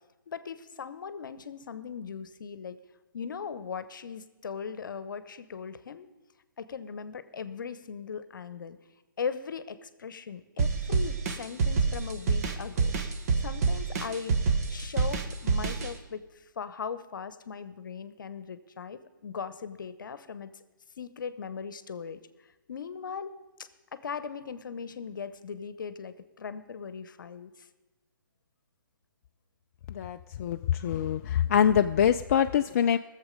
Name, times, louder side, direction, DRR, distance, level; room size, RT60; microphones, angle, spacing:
voice 1, 0.3-2.8 3.1-6.1 6.6-8.8 9.2-13.0 13.4-16.2 16.6-20.5 21.0-22.2 22.7-23.3 23.9-27.7, left 6 dB, 65° left, 13 dB, 0.9 m, -39 dB
sound 1, 10.6-15.9, right 4 dB, 50° right, 1.3 m, -27 dB
voice 2, 29.9-33.0, left 9 dB, 45° left, 7 dB, 0.4 m, -24 dB
19.0 x 7.3 x 5.2 m, 1.1 s
hypercardioid pair, 140°, 11 cm